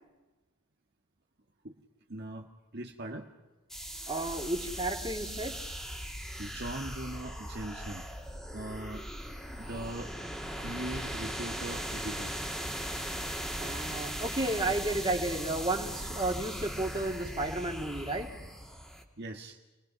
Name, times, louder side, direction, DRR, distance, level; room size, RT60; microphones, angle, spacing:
voice 1, 2.1-3.3 6.1-8.1 8.5-9.1 9.5-10.1 10.6-12.3 19.2-19.6, right 1 dB, 50° right, 1 dB, 1.7 m, -40 dB
sound 1, 3.7-19.0, equal, ahead, 2.5 m, -39 dB
voice 2, 4.1-5.6 13.6-18.3, right 2 dB, 20° right, 1 dB, 2.7 m, -32 dB
30.0 x 21.0 x 5.9 m, 1.1 s
head